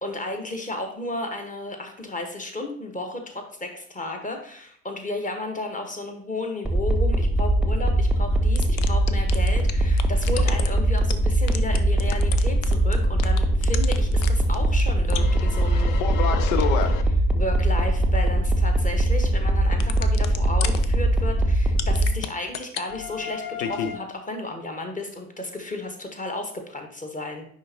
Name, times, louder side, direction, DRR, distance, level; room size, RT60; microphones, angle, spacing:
voice 1, 0.0-16.0 17.0-27.4, left 2 dB, 20° left, 4 dB, 1.2 m, -33 dB
sound 1, 6.6-22.1, right 1 dB, ahead, 0.7 m, -21 dB
sound 2, 8.6-9.7 10.0-10.7 11.0-11.1 11.5-12.9 13.2-14.3 14.5-14.6 14.8-14.9 15.1-17.0 19.7-20.8 21.8-22.3 22.5-24.0, left 8 dB, 65° left, 0.6 m, -29 dB
10.0 x 3.6 x 2.8 m, 0.62 s
figure-of-eight pair, 55°, 42 cm